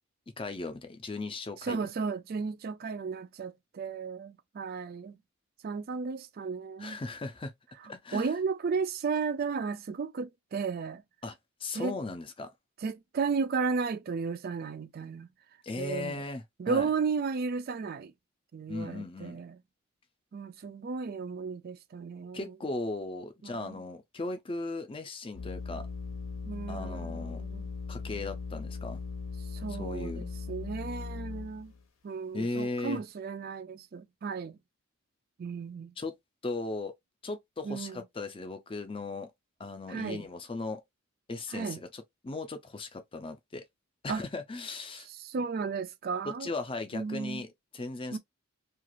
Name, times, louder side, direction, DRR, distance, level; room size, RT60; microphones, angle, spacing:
voice 1, 0.4-1.8 6.8-7.5 7.8-8.3 11.2-12.5 15.6-16.9 18.7-19.4 22.3-25.9 26.7-27.4 27.9-29.0 29.8-30.2 32.3-33.0 36.0-36.1 36.4-36.9 37.2-39.3 39.6-40.8 41.3-43.6 44.0-45.1 46.2-48.2, left 3 dB, 25° left, 0.4 m, -37 dB
voice 2, 1.6-5.2 5.6-7.0 8.1-11.0 11.7-12.0 12.8-15.3 15.8-16.2 16.6-18.1 18.5-19.6 20.3-22.5 23.4-23.8 26.5-27.7 29.5-31.7 32.0-34.6 35.4-35.9 37.6-38.0 39.9-40.3 41.5-41.8 44.1-44.2 45.2-46.5 46.9-47.4 48.1-48.2, right 5 dB, 45° right, 0.3 m, -34 dB
sound 1, 25.3-31.8, left 4 dB, 65° left, 0.7 m, -39 dB
2.4 x 2.4 x 2.9 m
head